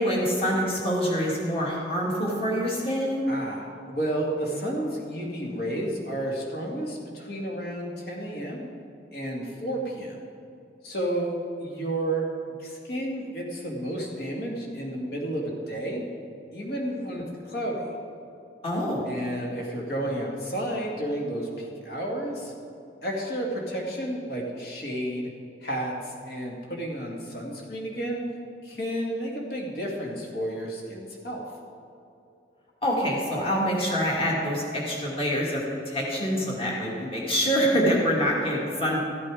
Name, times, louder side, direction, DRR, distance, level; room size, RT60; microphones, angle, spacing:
voice 1, 0.0-3.2 18.6-19.0 32.8-39.0, equal, 30° left, -3 dB, 2.1 m, -26 dB
voice 2, 3.3-8.7 9.1-10.2 10.8-16.0 16.5-17.9 19.1-22.5 23.0-25.3 25.6-28.2 28.6-31.4, right 1 dB, 60° left, -1 dB, 2.1 m, -31 dB
14.5 x 8.4 x 4.9 m, 2.7 s
head